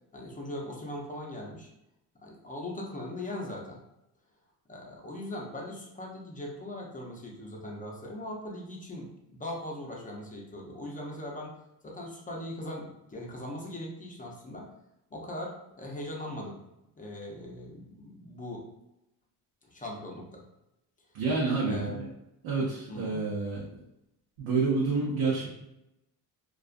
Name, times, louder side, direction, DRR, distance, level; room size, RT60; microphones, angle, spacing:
voice 1, 0.1-1.7 2.2-3.8 4.7-11.6 11.8-14.7 15.1-16.6 17.0-18.7 19.7-20.4 21.6-22.0 22.9-23.3, left 1 dB, 20° left, -2 dB, 0.6 m, -40 dB
voice 2, 21.1-22.1 22.4-23.6 24.4-25.5, right 4 dB, 75° right, -5 dB, 0.8 m, -28 dB
2.4 x 2.3 x 2.5 m, 0.87 s
supercardioid pair, 90°, 44 cm